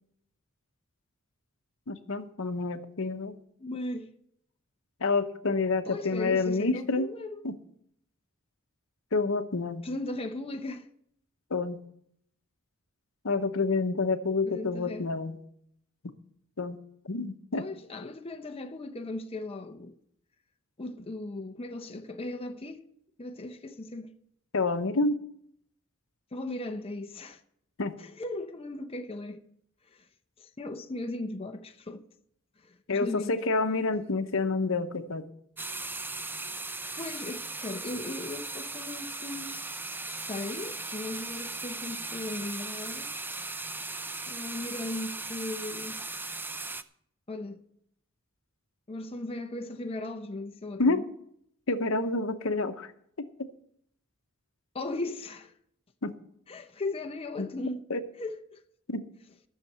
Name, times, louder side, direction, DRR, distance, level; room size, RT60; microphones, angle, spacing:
voice 1, 1.9-3.3 5.0-7.1 7.4-7.5 9.1-9.9 11.5-11.8 13.2-15.4 16.6-16.8 17.0-17.6 24.5-25.2 27.8-27.9 32.9-35.3 50.8-51.1 51.7-52.9 53.2-53.3 56.0-56.1 57.4-57.5 57.9-58.0 58.9-59.0, left 3 dB, 65° left, 0.9 m, -28 dB
voice 2, 3.6-4.1 5.9-7.4 9.8-10.9 14.4-15.1 17.5-20.0 20.8-22.8 23.2-24.1 26.3-27.4 28.0-29.4 29.9-30.1 30.4-32.0 32.6-33.3 36.9-39.6 40.1-43.1 44.3-46.0 47.3-47.6 48.9-51.0 54.7-55.5 56.5-57.8 58.2-58.6, left 2 dB, 25° left, 0.7 m, -37 dB
sound 1, 35.6-46.8, right 3 dB, 10° right, 0.5 m, -38 dB
13.0 x 6.7 x 8.0 m
head